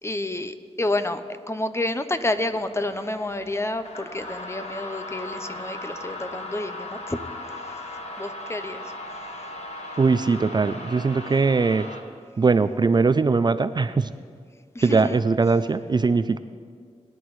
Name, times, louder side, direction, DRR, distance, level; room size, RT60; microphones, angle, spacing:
voice 1, 0.0-1.2 1.5-7.2 8.2-8.8 14.7-15.2, left 2 dB, 20° left, 10 dB, 0.7 m, -29 dB
sound 1, 2.1-12.0, left 1 dB, 60° left, 1.5 m, -38 dB
voice 2, 10.0-11.9 12.4-14.1 14.8-16.4, right 4 dB, 35° right, 12 dB, 0.4 m, -21 dB
21.0 x 10.5 x 3.2 m, 2.1 s
cardioid pair, 65°, 12 cm